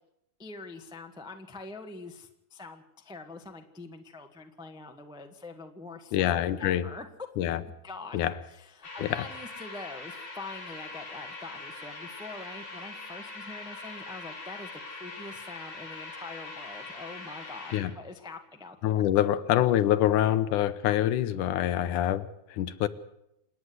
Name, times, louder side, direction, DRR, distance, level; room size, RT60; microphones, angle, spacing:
voice 1, 0.4-7.0 7.8-8.2 8.5-19.0, left 3 dB, 5° right, 5 dB, 0.5 m, -44 dB
voice 2, 6.1-6.9 7.4-7.6 8.1-8.3 9.0-9.2 17.7-17.9 18.8-22.9, left 12 dB, 80° left, 14 dB, 2.4 m, -25 dB
sound 1, 8.8-17.8, left 3 dB, 65° left, 6.7 m, -42 dB
28.0 x 9.7 x 9.6 m, 0.83 s
omnidirectional pair, 3.5 m